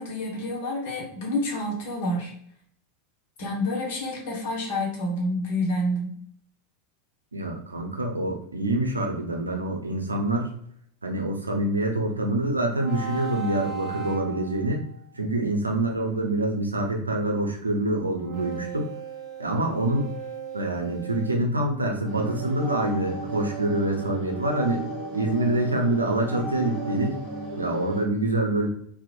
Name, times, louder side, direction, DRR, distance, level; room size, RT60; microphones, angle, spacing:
voice 1, 0.0-2.3 3.4-6.1, left 1 dB, 55° left, -2 dB, 0.8 m, -28 dB
voice 2, 7.3-10.5 11.0-14.8 15.1-18.9 19.4-20.1 20.5-24.8 25.1-27.1 27.5-28.7, right 1 dB, 80° right, 2 dB, 0.5 m, -26 dB
sound 1, 12.7-14.9 18.2-21.4, right 7 dB, 25° right, 0.7 m, -37 dB
sound 2, 22.0-28.0, right 1 dB, 25° left, 1.2 m, -35 dB
2.9 x 2.1 x 2.4 m, 0.67 s
figure-of-eight pair, 85°, 0 cm